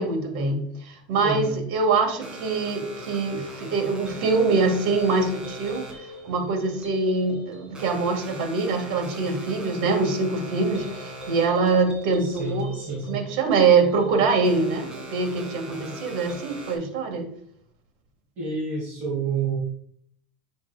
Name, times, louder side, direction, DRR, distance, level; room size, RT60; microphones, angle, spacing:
voice 1, 0.0-12.7 13.1-17.3, right 4 dB, 70° right, 2 dB, 2.1 m, -24 dB
voice 2, 1.2-1.5 12.2-13.2 18.4-19.6, right 5 dB, 40° right, -5 dB, 2.6 m, -29 dB
sound 1, 2.2-16.8, equal, 20° right, 2.2 m, -40 dB
8.4 x 6.0 x 2.4 m, 0.63 s
supercardioid pair, 140°, 5 cm